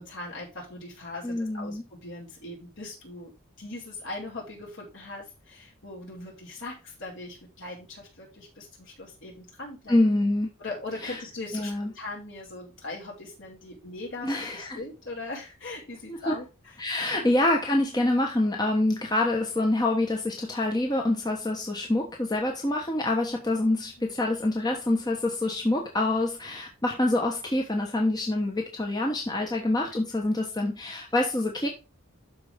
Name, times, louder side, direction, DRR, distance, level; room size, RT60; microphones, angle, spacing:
voice 1, 0.0-10.0 10.6-16.7 17.1-17.3 24.0-24.1, left 2 dB, 60° left, 5.0 m, -40 dB
voice 2, 1.2-1.8 9.9-10.5 11.0-11.2 11.5-11.9 14.2-14.8 16.1-16.4 16.8-31.7, left 2 dB, 20° left, 1.1 m, -26 dB
12.0 x 4.7 x 3.7 m
head